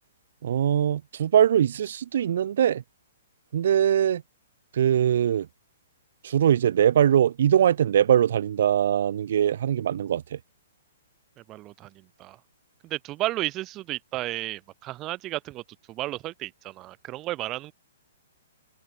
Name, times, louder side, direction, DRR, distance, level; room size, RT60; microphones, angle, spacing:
voice 1, 0.4-2.8 3.5-4.2 4.7-5.5 6.2-10.4, right 9 dB, 65° right, 5.7 m, -22 dB
voice 2, 11.5-12.4 12.8-15.6 15.9-17.7, right 17 dB, 30° right, 5.2 m, -33 dB
hypercardioid pair, 130°, 0 cm